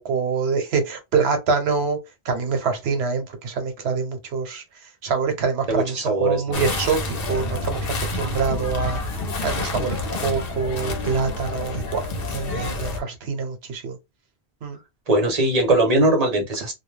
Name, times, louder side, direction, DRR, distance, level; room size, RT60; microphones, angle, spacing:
voice 1, 0.0-2.0 2.2-4.6 5.0-9.0 9.4-14.0 14.6-14.8, right 5 dB, 85° right, 1.0 m, -25 dB
voice 2, 5.7-6.6 15.1-16.7, right 2 dB, 40° right, 0.9 m, -20 dB
sound 1, 6.5-13.0, left 2 dB, 65° left, 0.9 m, -28 dB
2.2 x 2.2 x 3.2 m
omnidirectional pair, 1.1 m